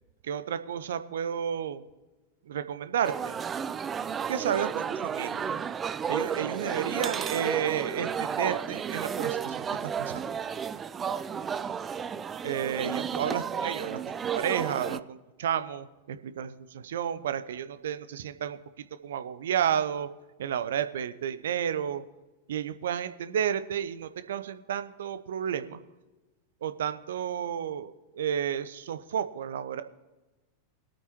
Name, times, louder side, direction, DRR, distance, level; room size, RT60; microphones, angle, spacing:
voice 1, 0.2-1.8 2.5-3.3 4.3-5.5 6.1-10.2 12.4-20.1 20.4-22.0 22.5-25.8 26.6-29.8, right 9 dB, 60° right, 12 dB, 0.6 m, -32 dB
sound 1, 3.0-15.0, right 7 dB, 20° right, 0.3 m, -32 dB
21.5 x 8.8 x 3.0 m, 1.1 s
figure-of-eight pair, 90°, 0 cm